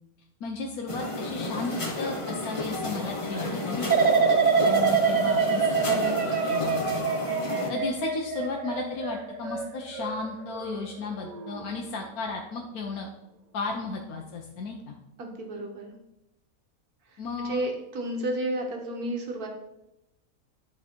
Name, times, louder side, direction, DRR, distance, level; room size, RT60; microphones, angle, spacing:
voice 1, 0.4-4.1 4.6-6.1 6.5-7.1 7.7-13.1 13.5-14.9 17.2-17.6, left 3 dB, 75° left, 0 dB, 1.4 m, -34 dB
sound 1, 0.9-7.7, left 2 dB, 25° left, 0.9 m, -32 dB
sound 2, 3.9-10.8 11.2-11.7, right 5 dB, 60° right, 0.4 m, -25 dB
voice 2, 5.7-6.3 15.2-15.9 17.1-19.5, right 1 dB, 80° right, 2 dB, 1.9 m, -32 dB
11.0 x 4.7 x 4.5 m, 0.89 s
omnidirectional pair, 1.6 m